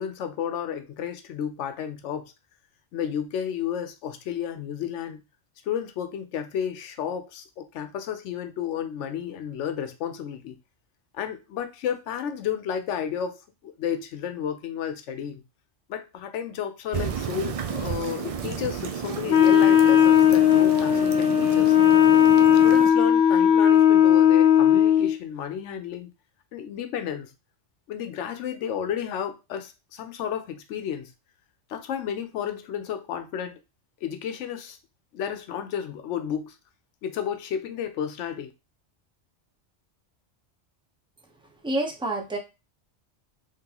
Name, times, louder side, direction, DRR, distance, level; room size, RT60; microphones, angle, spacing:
voice 1, 0.0-2.3 2.9-5.2 5.6-10.5 11.1-15.4 15.9-21.8 22.6-26.1 26.5-27.3 27.9-31.1 31.7-33.6 34.0-34.8 35.1-36.6 37.0-38.5, left 8 dB, 85° left, 0.9 m, -32 dB
sound 1, 16.9-22.9, right 7 dB, 65° right, 0.3 m, -32 dB
Wind instrument woodwind instrument, 19.3-25.1, left 9 dB, 50° left, 0.7 m, -17 dB
voice 2, 41.6-42.4, right 2 dB, 5° right, 0.6 m, -27 dB
3.7 x 3.2 x 2.9 m
omnidirectional pair, 1.2 m